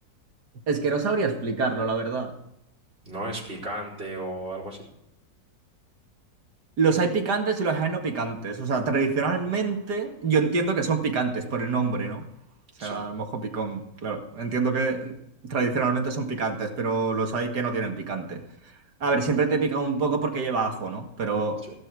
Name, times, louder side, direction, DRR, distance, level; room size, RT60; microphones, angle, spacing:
voice 1, 0.7-2.3 6.8-12.2 12.8-15.1 15.4-18.4 19.0-21.6, right 4 dB, 65° right, 3 dB, 2.5 m, -26 dB
voice 2, 3.1-4.9 12.8-13.0 19.0-19.1 21.6-21.7, right 1 dB, 35° right, -1 dB, 4.5 m, -35 dB
16.5 x 12.5 x 4.8 m, 0.81 s
omnidirectional pair, 1.9 m